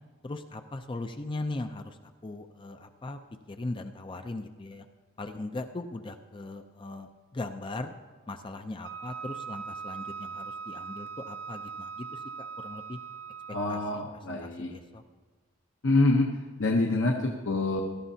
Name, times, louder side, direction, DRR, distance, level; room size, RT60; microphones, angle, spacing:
voice 1, 0.2-3.2 3.5-4.9 5.2-7.9 8.3-13.0 13.7-14.0 14.3-15.0, left 2 dB, 25° left, 7 dB, 0.4 m, -39 dB
Wind instrument woodwind instrument, 8.8-14.0, right 6 dB, 65° right, 0.5 m, -40 dB
voice 2, 13.5-14.7 15.8-17.8, left 2 dB, 65° left, 0 dB, 0.8 m, -26 dB
17.0 x 13.0 x 2.8 m, 1.4 s
head